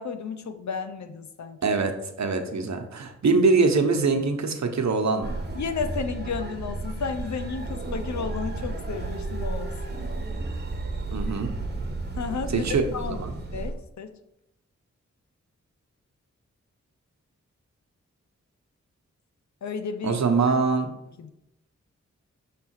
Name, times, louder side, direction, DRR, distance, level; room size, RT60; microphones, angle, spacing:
voice 1, 0.0-1.6 5.5-10.1 12.2-12.7 12.9-13.2 13.5-14.1 19.6-20.2 21.2-21.3, left 5 dB, 70° left, 9 dB, 0.7 m, -33 dB
voice 2, 1.6-1.9 2.2-5.4 11.1-11.5 12.5-12.8 13.1-13.3 20.0-20.9, right 4 dB, 70° right, 5 dB, 0.9 m, -23 dB
sound 1, 5.2-13.7, right 2 dB, 35° right, 1.2 m, -32 dB
6.5 x 3.4 x 4.6 m, 0.83 s
cardioid pair, 50°, 29 cm